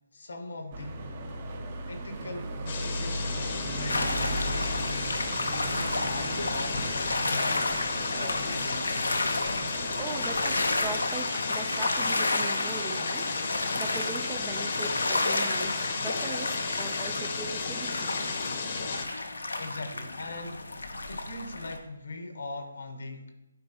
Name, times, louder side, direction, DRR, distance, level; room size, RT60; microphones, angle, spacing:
voice 1, 0.1-1.1 1.9-5.2 5.7-7.9 8.2-9.1 19.6-20.7 21.1-23.3, left 2 dB, 70° left, 6 dB, 1.2 m, -40 dB
sound 1, 0.7-11.0, right 1 dB, 40° right, 1.0 m, -37 dB
sound 2, 2.7-19.0, left 4 dB, 45° left, 1.0 m, -35 dB
sound 3, 3.9-21.8, left 2 dB, 85° left, 0.8 m, -31 dB
voice 2, 10.0-13.3 13.7-18.3, right 5 dB, 15° right, 6 dB, 0.5 m, -40 dB
11.0 x 4.4 x 2.9 m, 0.93 s
figure-of-eight pair, 150°, 0 cm